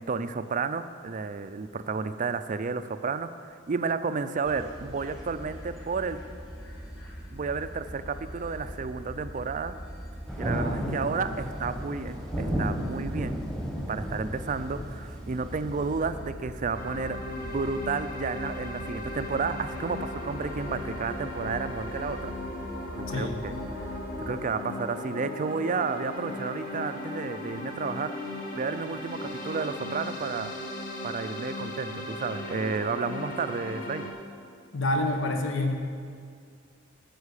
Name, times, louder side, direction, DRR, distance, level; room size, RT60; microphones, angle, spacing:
voice 1, 0.0-6.2 7.3-9.7 10.4-13.4 13.9-22.3 22.9-28.1 28.6-30.5 31.0-34.1, right 4 dB, 40° right, 11 dB, 0.4 m, -32 dB
sound 1, 4.4-24.3, equal, 20° left, 2.3 m, -42 dB
Thunder, 10.3-16.1, equal, 5° left, 1.3 m, -34 dB
voice 2, 10.5-11.2 23.1-23.5 34.7-35.9, left 2 dB, 70° left, 3 dB, 1.2 m, -29 dB
sound 2, 16.7-34.1, left 2 dB, 45° left, 1.5 m, -37 dB
9.7 x 6.4 x 8.2 m, 2.3 s
head